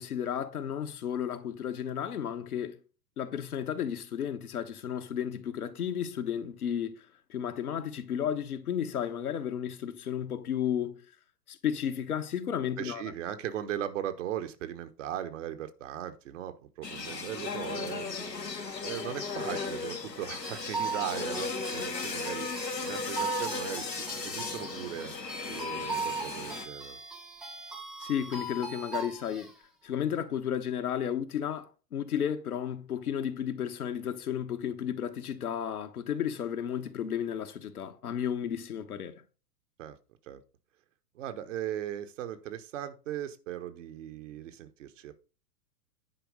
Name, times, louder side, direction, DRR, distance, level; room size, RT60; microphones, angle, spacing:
voice 1, 0.0-2.8 3.2-11.0 11.5-13.0 28.0-29.5 29.8-39.2, left 9 dB, 65° left, 1.4 m, -33 dB
voice 2, 12.8-18.1 18.8-22.5 22.8-25.2 25.5-27.0 39.8-40.0 40.2-40.4 41.1-45.2, right 11 dB, 50° right, 1.3 m, -38 dB
sound 1, 16.8-26.7, left 4 dB, 85° left, 1.9 m, -36 dB
sound 2, 20.4-29.5, right 3 dB, 5° right, 0.3 m, -38 dB
10.0 x 4.6 x 5.3 m
figure-of-eight pair, 105°, 48 cm